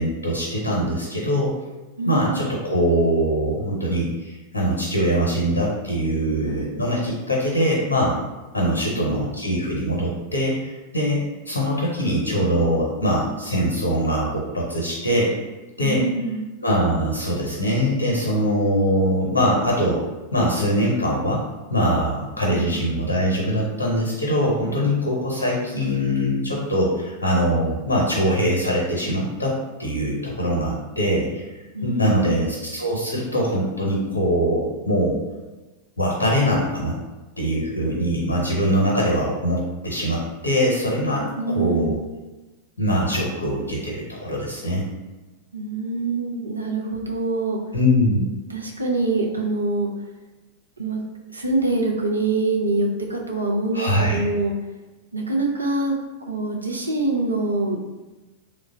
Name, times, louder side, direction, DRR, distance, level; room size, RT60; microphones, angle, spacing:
voice 1, 0.0-1.5 2.0-8.2 8.5-15.3 15.8-16.0 16.6-20.0 20.3-21.4 21.7-31.4 31.8-35.2 36.0-37.0 37.4-42.0 42.8-44.8 47.7-48.2 53.7-54.3, equal, 70° left, -3 dB, 0.7 m, -22 dB
voice 2, 2.0-2.4 8.6-9.2 15.8-16.5 22.4-22.7 31.7-32.5 41.4-42.0 45.5-47.6 48.5-49.9 50.8-51.0 51.3-54.5 55.1-55.9 56.3-57.8, right 2 dB, 80° right, -1 dB, 0.5 m, -25 dB
3.2 x 2.1 x 3.8 m, 1.1 s
figure-of-eight pair, 90°, 0 cm